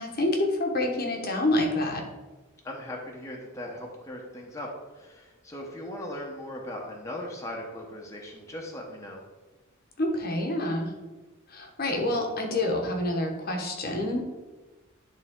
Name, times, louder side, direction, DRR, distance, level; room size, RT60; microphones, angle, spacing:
voice 1, 0.0-2.1 10.0-10.9 11.5-14.3, left 1 dB, 45° left, 2 dB, 1.1 m, -27 dB
voice 2, 2.6-9.2, left 1 dB, 15° left, -2 dB, 1.0 m, -39 dB
11.0 x 3.7 x 3.6 m, 1.2 s
head